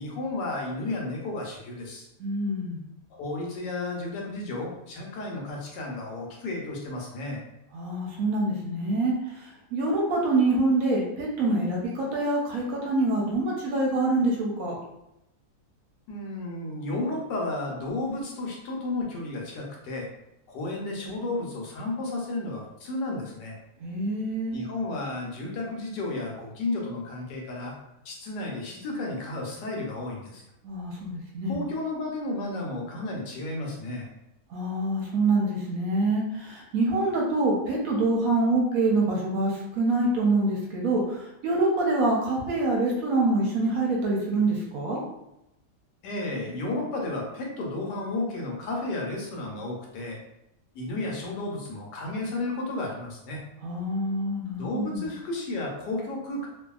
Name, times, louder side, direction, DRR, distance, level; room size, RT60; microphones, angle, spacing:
voice 1, 0.0-2.1 3.1-7.4 16.1-20.1 20.5-23.6 24.5-27.7 28.0-30.4 31.4-34.1 46.0-50.2 50.7-53.4 54.6-56.5, left 2 dB, 90° left, -1 dB, 1.3 m, -32 dB
voice 2, 2.2-2.8 7.7-9.1 9.7-14.8 23.8-24.6 30.6-31.6 34.5-45.0 53.6-55.0, right 2 dB, 65° right, -2 dB, 0.9 m, -25 dB
2.7 x 2.6 x 2.3 m, 0.84 s
omnidirectional pair, 1.8 m